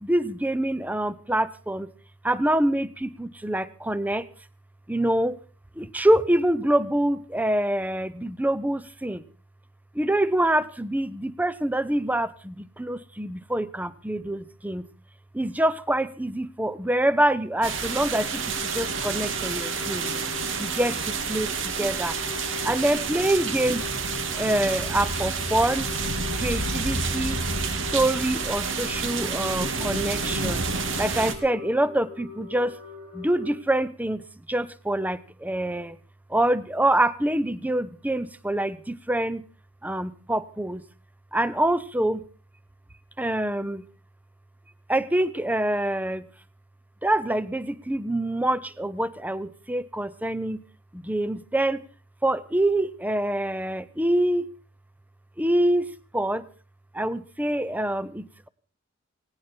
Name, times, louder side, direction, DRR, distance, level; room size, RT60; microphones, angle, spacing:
voice 1, 0.0-1.9 2.2-4.3 4.9-5.4 5.8-9.2 9.9-14.9 15.3-20.1 20.6-22.2 22.6-23.8 24.4-25.9 26.3-27.4 27.9-30.6 31.0-32.8 33.1-36.0 36.3-39.4 39.8-40.8 41.3-42.2 43.2-43.8 44.9-46.3 47.0-50.6 50.9-51.8 52.2-54.5 55.4-55.9 56.1-56.5 56.9-58.5, right 1 dB, 10° right, 17 dB, 0.7 m, -25 dB
sound 1, 17.6-31.3, right 4 dB, 65° right, 2.2 m, -29 dB
sound 2, 18.4-33.5, left 5 dB, 85° right, 5.6 m, -42 dB
18.0 x 18.0 x 4.4 m, 0.38 s
head